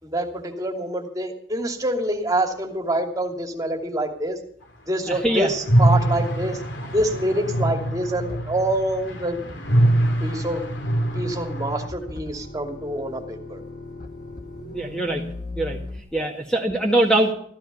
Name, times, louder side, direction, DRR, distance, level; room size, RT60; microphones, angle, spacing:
voice 1, 0.0-4.4 4.9-6.6 6.9-9.4 10.2-10.6 11.1-13.6 16.2-16.3, right 1 dB, 20° right, 2 dB, 2.7 m, -26 dB
sound 1, 2.2-2.3 4.0-4.1 4.3-4.5 5.0-5.1 5.3-6.3 6.8-16.0, left 2 dB, 50° left, 2.4 m, -39 dB
voice 2, 5.1-5.5 14.7-15.2 15.6-15.8 16.1-17.3, right 1 dB, 5° left, 0 dB, 1.9 m, -22 dB
sound 2, 5.6-11.9, right 1 dB, 90° left, 2.8 m, -23 dB
15.0 x 14.5 x 5.5 m, 0.63 s
head